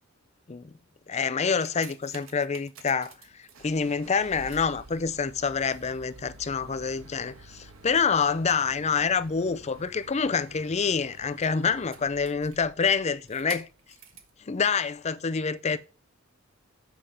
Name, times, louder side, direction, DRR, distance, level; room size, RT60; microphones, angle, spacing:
voice 1, 1.1-13.7 14.5-15.8, left 5 dB, 30° left, 0.5 m, -27 dB
sound 1, 1.4-14.4 15.1-15.2, right 3 dB, 70° right, 1.4 m, -49 dB
7.8 x 5.7 x 4.8 m
head